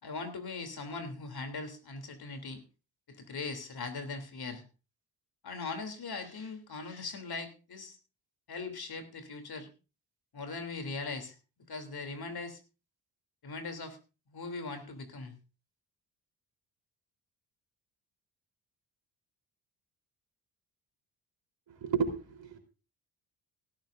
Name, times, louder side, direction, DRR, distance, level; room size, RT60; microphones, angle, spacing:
voice 1, 0.0-2.6 3.1-4.6 5.4-8.0 8.5-9.7 10.3-11.3 11.7-12.6 13.4-14.0 14.3-15.3, left 3 dB, 50° left, 8 dB, 3.2 m, -40 dB
voice 2, 21.7-22.6, right 6 dB, 60° right, 4 dB, 3.8 m, -32 dB
17.0 x 14.0 x 2.6 m, 0.32 s
hypercardioid pair, 50°, 49 cm